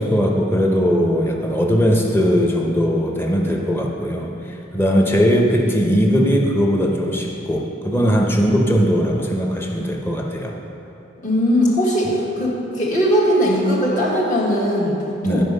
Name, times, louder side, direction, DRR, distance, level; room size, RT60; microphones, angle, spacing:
voice 1, 0.0-4.3 4.7-10.5 15.2-15.4, equal, 10° left, 0 dB, 0.8 m, -19 dB
voice 2, 11.2-15.4, equal, 45° left, -4 dB, 1.6 m, -19 dB
10.0 x 5.1 x 5.4 m, 2.9 s
head